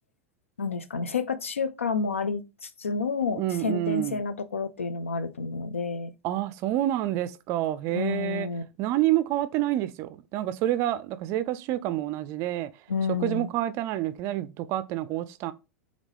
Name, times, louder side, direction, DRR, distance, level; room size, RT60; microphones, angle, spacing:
voice 1, 0.6-6.1 7.9-8.6 12.9-13.5, left 5 dB, 80° left, 0.4 m, -30 dB
voice 2, 3.3-4.2 6.2-8.5 8.8-12.7 13.2-15.5, right 14 dB, 40° right, 0.4 m, -28 dB
3.7 x 3.5 x 3.1 m
figure-of-eight pair, 85°, 7 cm